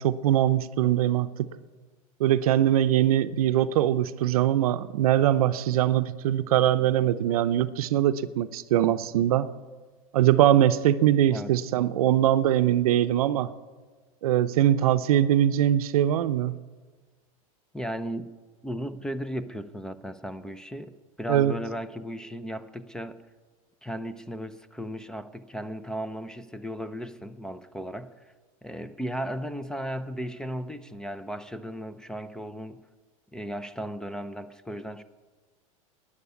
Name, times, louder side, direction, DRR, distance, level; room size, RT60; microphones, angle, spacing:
voice 1, 0.0-1.5 2.2-9.5 10.1-13.5 14.2-16.5 21.3-21.5, right 11 dB, 80° right, 0.6 m, -22 dB
voice 2, 17.7-18.3 18.6-23.2 23.8-28.3 28.6-32.8 33.3-35.0, equal, 5° left, 0.6 m, -36 dB
12.5 x 9.8 x 8.3 m
supercardioid pair, 115°, 18 cm